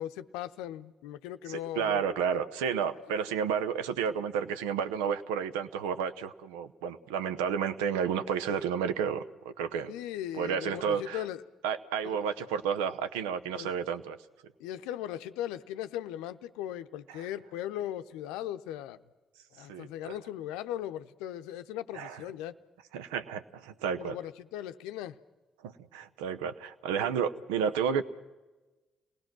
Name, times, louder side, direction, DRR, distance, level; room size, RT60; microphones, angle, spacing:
voice 1, 0.0-2.1 9.9-11.4 12.0-12.2 13.6-13.7 14.6-19.0 19.5-22.6 24.0-25.2, left 12 dB, 75° left, 11 dB, 0.7 m, -38 dB
voice 2, 1.5-9.9 10.3-11.2 11.6-14.2 17.1-17.3 19.7-20.1 21.9-22.2 22.9-24.2 25.6-28.0, right 7 dB, 80° right, 12 dB, 0.8 m, -31 dB
29.5 x 19.5 x 6.1 m, 1.2 s
hypercardioid pair, 45°, 0 cm